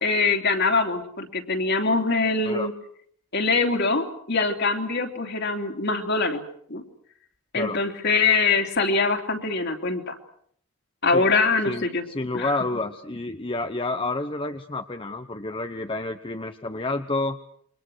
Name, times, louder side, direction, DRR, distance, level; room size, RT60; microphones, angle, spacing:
voice 1, 0.0-2.7 3.3-6.4 6.7-6.8 7.5-10.2 11.0-12.0 12.3-12.5, left 4 dB, 55° left, 4 dB, 3.1 m, -23 dB
voice 2, 11.6-17.4, left 2 dB, 25° left, 7 dB, 1.0 m, -29 dB
28.5 x 24.0 x 6.4 m, 0.64 s
head